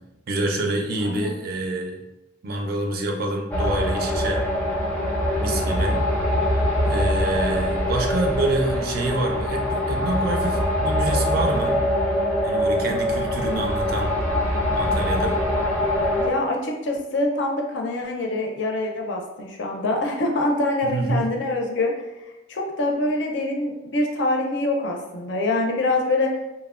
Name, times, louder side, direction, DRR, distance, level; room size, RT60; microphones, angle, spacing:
voice 1, 0.3-2.0 2.4-4.4 5.4-6.0 6.8-11.8 12.4-14.2 14.7-15.4 20.8-21.2, right 2 dB, 50° right, 1 dB, 0.4 m, -27 dB
sound 1, 3.5-16.3, left 1 dB, 10° left, 0.4 m, -23 dB
voice 2, 16.2-21.9 22.5-26.4, left 2 dB, 70° left, 1 dB, 0.5 m, -25 dB
2.8 x 2.1 x 2.3 m, 0.96 s
head